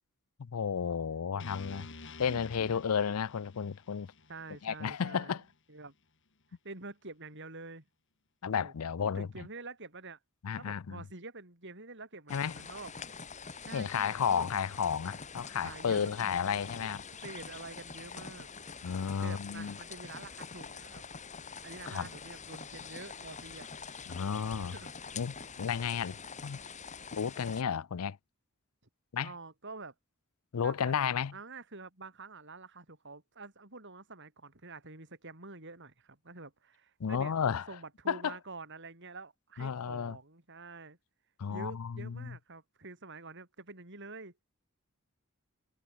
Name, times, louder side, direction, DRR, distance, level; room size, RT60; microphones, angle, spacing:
voice 1, 0.4-1.9 2.2-4.1 4.6-5.4 8.4-9.5 10.4-11.0 12.3-12.6 13.7-17.0 18.8-19.8 21.9-22.1 24.1-24.7 25.2-26.2 26.4-26.6 27.1-28.2 29.1-29.3 30.5-31.3 37.0-37.6 38.1-38.4 39.6-40.2 41.4-42.4, left 7 dB, 85° left, 0.5 m, -32 dB
voice 2, 1.3-1.9 2.3-2.4 4.3-5.4 5.7-5.9 6.6-7.8 8.5-8.7 9.0-10.2 10.6-12.9 13.6-14.5 15.6-16.9 17.2-18.5 19.2-21.0 21.6-23.7 24.6-24.9 29.2-29.9 30.6-41.0 41.5-44.3, right 3 dB, 55° right, 5.5 m, -47 dB
sound 1, 1.4-5.5, left 3 dB, 60° left, 2.4 m, -49 dB
sound 2, 12.3-27.6, left 5 dB, 35° left, 3.0 m, -45 dB
head